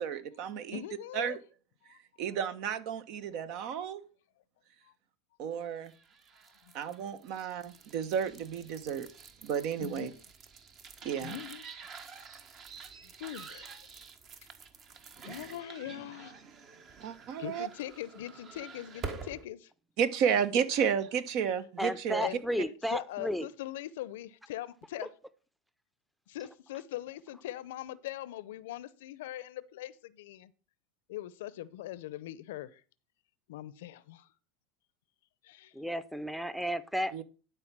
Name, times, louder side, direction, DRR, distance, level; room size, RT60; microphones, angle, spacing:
voice 1, 0.0-0.8 1.1-1.4 2.2-4.0 5.4-5.9 6.7-9.1 9.4-10.1 11.0-11.4 17.0-17.7 20.0-22.2 37.1-37.2, right 8 dB, 60° right, 1.1 m, -32 dB
voice 2, 0.7-1.4 1.9-2.0 5.5-5.6 6.7-6.8 9.8-10.1 11.2-11.6 13.0-13.8 15.2-16.4 17.4-19.7 22.2-22.4 22.9-25.1 26.3-30.5 31.1-32.8 33.5-34.3 35.4-35.7, left 13 dB, 80° left, 0.6 m, -41 dB
sound 1, 5.8-19.4, right 5 dB, 40° right, 1.4 m, -48 dB
voice 3, 21.8-23.5 35.7-37.2, equal, ahead, 0.7 m, -33 dB
11.5 x 4.8 x 6.1 m
supercardioid pair, 110°, 0 cm